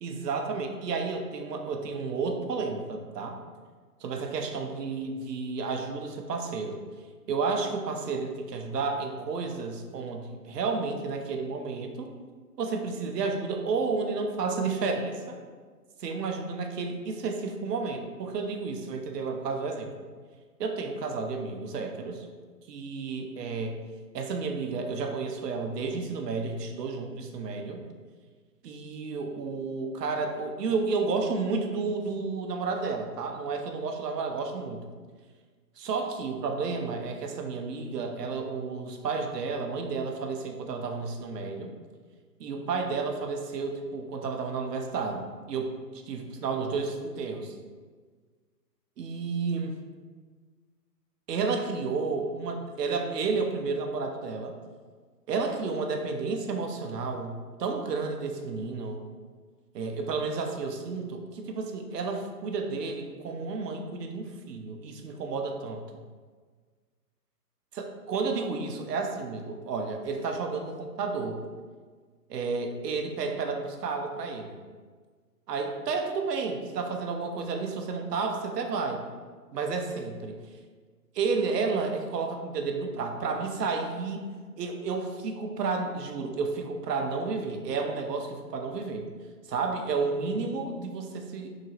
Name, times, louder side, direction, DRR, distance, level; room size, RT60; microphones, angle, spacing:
voice 1, 0.0-3.4 4.0-6.8 7.3-12.1 12.6-15.4 16.0-19.9 20.6-22.3 22.7-23.8 24.1-27.8 28.6-34.8 35.8-41.7 42.4-47.5 49.0-49.7 51.3-54.5 55.3-57.3 57.6-59.0 59.7-65.8 67.7-71.4 72.3-74.6 75.5-79.0 79.5-80.4 81.1-84.3 84.6-89.1 89.5-91.5, right 4 dB, 75° right, 3 dB, 0.6 m, -31 dB
2.9 x 2.7 x 2.8 m, 1.5 s
hypercardioid pair, 150°, 49 cm